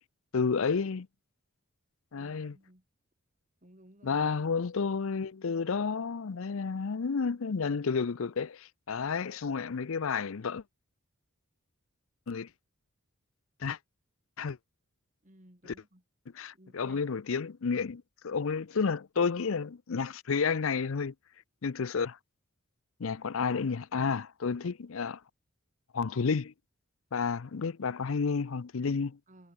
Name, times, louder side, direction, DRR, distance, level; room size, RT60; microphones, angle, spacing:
voice 1, 0.3-1.1 2.1-2.6 4.0-10.6 12.3-12.5 13.6-13.8 14.4-14.6 15.7-15.8 16.3-21.1 21.6-22.2 23.0-25.2 25.9-26.5 27.1-29.2, left 5 dB, 65° left, 0.5 m, -31 dB
voice 2, 2.1-2.8 3.6-4.5 15.2-16.0 16.5-17.0 29.3-29.5, right 1 dB, 35° right, 3.3 m, -58 dB
head